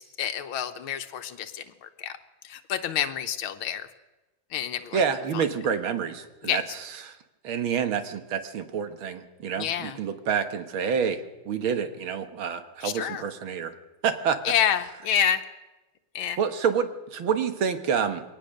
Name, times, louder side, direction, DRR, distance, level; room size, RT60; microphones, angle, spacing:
voice 1, 0.0-2.1 2.4-3.9 4.5-5.0 6.4-6.6 9.6-10.0 12.8-13.2 14.4-15.4 16.1-16.4, left 9 dB, 80° left, 8 dB, 1.7 m, -28 dB
voice 2, 4.9-7.2 7.4-11.2 11.5-13.7 14.0-14.4 16.4-18.2, right 7 dB, 80° right, 9 dB, 2.2 m, -28 dB
22.0 x 18.5 x 6.6 m, 1.1 s
omnidirectional pair, 2.2 m